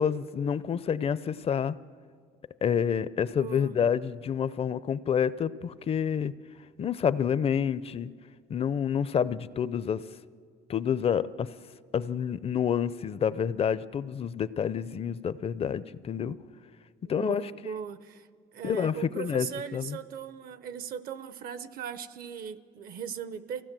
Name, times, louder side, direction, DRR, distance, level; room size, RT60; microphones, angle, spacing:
voice 1, 0.0-1.7 2.6-6.3 6.8-8.1 8.5-10.0 10.7-11.5 11.9-16.4 17.1-17.5 18.6-19.5 19.7-20.0, left 8 dB, 35° left, 0.5 m, -28 dB
voice 2, 3.3-3.8 17.0-23.6, right 7 dB, 60° right, 0.8 m, -39 dB
23.0 x 16.0 x 7.5 m
cardioid pair, 110°, 17 cm